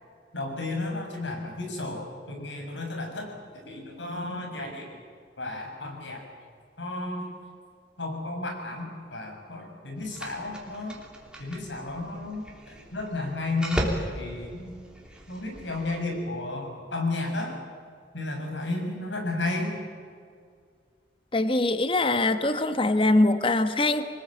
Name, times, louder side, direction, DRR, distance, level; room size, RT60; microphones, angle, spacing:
voice 1, 0.3-4.9 5.4-6.2 6.8-7.3 8.0-11.0 11.4-14.7 15.3-17.6 18.1-19.7, left 2 dB, 80° left, 2 dB, 6.7 m, -33 dB
sound 1, 10.0-16.0, equal, 5° right, 3.3 m, -37 dB
voice 2, 21.3-24.1, left 2 dB, 30° left, 10 dB, 1.1 m, -23 dB
25.0 x 20.0 x 8.8 m, 2.2 s
head